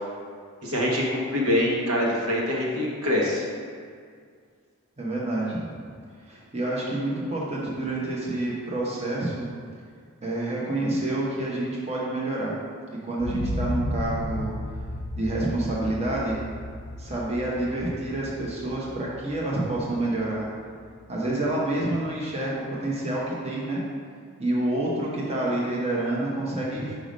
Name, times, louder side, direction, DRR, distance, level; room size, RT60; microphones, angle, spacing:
voice 1, 0.6-3.5, left 1 dB, 85° right, -3 dB, 1.3 m, -24 dB
voice 2, 5.0-5.8 6.3-9.5 10.2-12.5 13.0-14.5 15.2-16.4 17.0-20.5 21.1-23.8 24.4-26.9, right 1 dB, 30° right, -5 dB, 1.0 m, -28 dB
sound 1, 13.2-21.1 21.5-21.6, left 1 dB, 60° left, 0.5 m, -34 dB
5.2 x 4.9 x 5.2 m, 2.1 s
head